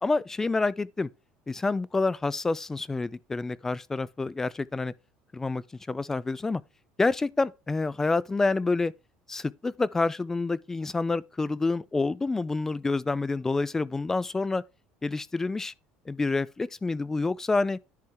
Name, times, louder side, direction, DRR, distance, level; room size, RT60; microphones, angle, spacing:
voice 1, 0.0-1.1 1.5-4.9 5.3-6.6 7.0-8.9 9.3-14.6 15.0-15.7 16.1-17.8, left 3 dB, 15° left, 0.3 m, -28 dB
10.5 x 3.5 x 4.5 m
cardioid pair, 125°, 3 cm